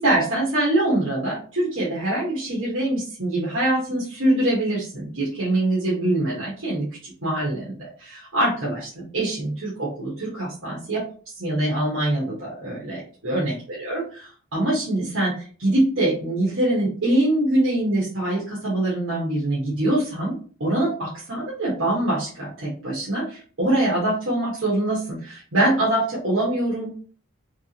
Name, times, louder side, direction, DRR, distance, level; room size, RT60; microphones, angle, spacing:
voice 1, 0.0-11.0 11.4-20.3 20.6-27.0, right 1 dB, 70° right, -6 dB, 1.3 m, -24 dB
3.5 x 2.9 x 2.9 m, 0.41 s
head